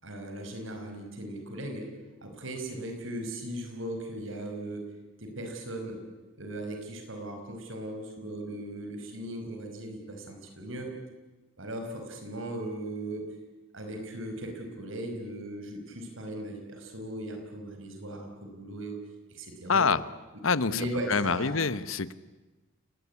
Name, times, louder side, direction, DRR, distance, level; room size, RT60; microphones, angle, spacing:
voice 1, 0.0-1.9 2.2-4.8 5.2-6.0 6.4-10.9 11.6-13.3 13.7-19.0 19.3-19.9 20.7-21.6, right 1 dB, 70° right, 4 dB, 5.3 m, -38 dB
voice 2, 19.7-20.0 20.4-22.1, left 5 dB, 75° left, 15 dB, 1.1 m, -26 dB
29.5 x 19.5 x 9.7 m, 1.2 s
head